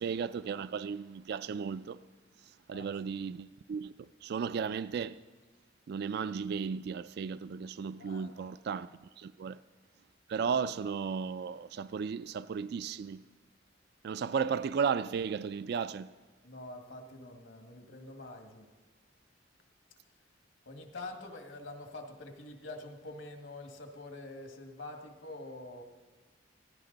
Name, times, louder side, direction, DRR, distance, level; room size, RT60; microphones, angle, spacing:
voice 1, 0.0-2.0 2.4-5.2 5.9-9.6 10.3-13.3 14.0-16.1, right 6 dB, 60° right, 0.3 m, -35 dB
voice 2, 8.0-8.5 9.5-9.6 16.4-18.7 20.7-25.8, left 2 dB, 75° left, 1.9 m, -46 dB
17.0 x 15.5 x 4.0 m
head